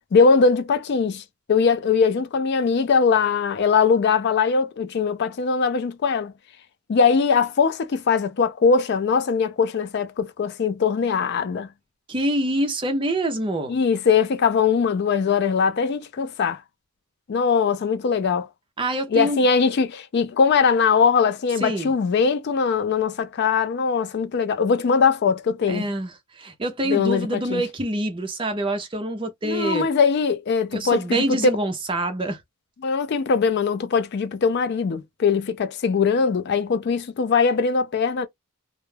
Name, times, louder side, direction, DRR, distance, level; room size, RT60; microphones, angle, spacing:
voice 1, 0.1-1.2 1.5-6.3 6.9-11.7 13.7-16.6 17.3-18.5 19.1-25.9 26.9-27.6 29.4-31.4 32.8-38.3, left 5 dB, 50° left, 0.3 m, -21 dB
voice 2, 12.1-13.8 18.8-19.4 21.6-21.9 25.7-29.9 30.7-32.4, right 1 dB, 25° right, 0.5 m, -26 dB
2.2 x 2.0 x 3.1 m
head